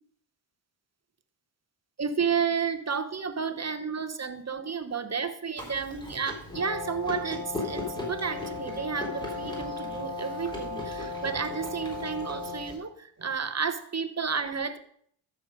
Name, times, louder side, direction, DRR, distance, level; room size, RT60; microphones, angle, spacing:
voice 1, 2.0-14.8, right 6 dB, 35° right, 10 dB, 1.1 m, -31 dB
Chewing mastication, 5.6-12.8, left 2 dB, 10° left, 3.8 m, -39 dB
Brass instrument, 6.5-12.8, left 2 dB, 40° left, 2.4 m, -37 dB
13.0 x 6.8 x 5.2 m, 0.65 s
cardioid pair, 70°, 46 cm